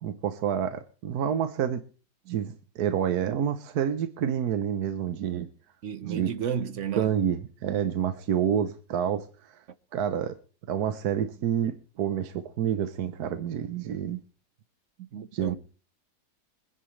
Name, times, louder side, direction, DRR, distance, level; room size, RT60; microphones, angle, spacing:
voice 1, 0.0-1.8 2.3-5.5 6.0-6.3 7.0-9.6 9.9-10.3 10.7-14.2 15.3-15.6, right 9 dB, 75° right, 1.4 m, -28 dB
voice 2, 5.8-7.2 15.1-15.6, right 8 dB, 55° right, 1.0 m, -32 dB
24.5 x 10.0 x 3.2 m
omnidirectional pair, 1.7 m